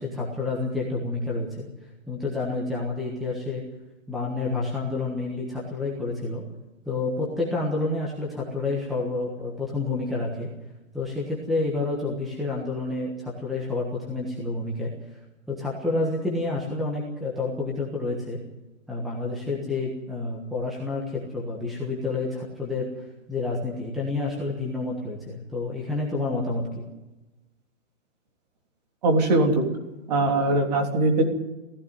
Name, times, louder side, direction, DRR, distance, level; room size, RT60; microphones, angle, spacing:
voice 1, 0.0-3.6 4.1-6.4 6.8-10.5 10.9-14.9 15.5-18.4 18.9-26.7, left 3 dB, ahead, -3 dB, 1.4 m, -29 dB
voice 2, 29.0-29.6 30.1-31.2, right 2 dB, 30° right, 3 dB, 3.4 m, -21 dB
17.0 x 16.0 x 9.5 m, 1.0 s
hypercardioid pair, 165°, 39 cm